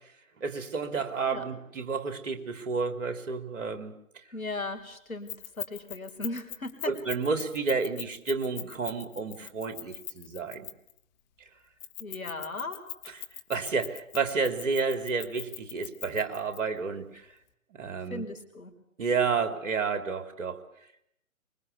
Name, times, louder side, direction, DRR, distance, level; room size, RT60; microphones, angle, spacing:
voice 1, 0.4-3.9 6.9-10.7 13.1-13.2 13.5-17.2 17.8-18.2 19.0-20.6, right 5 dB, 60° right, 9 dB, 3.5 m, -30 dB
voice 2, 4.3-5.3 5.6-6.9 12.0-12.8 18.1-18.7, left 2 dB, 75° left, 7 dB, 4.8 m, -37 dB
Keys jangling, 5.3-11.0 11.8-16.6, left 14 dB, 30° left, 1.7 m, -41 dB
25.0 x 23.5 x 8.4 m, 0.74 s
figure-of-eight pair, 130°, 42 cm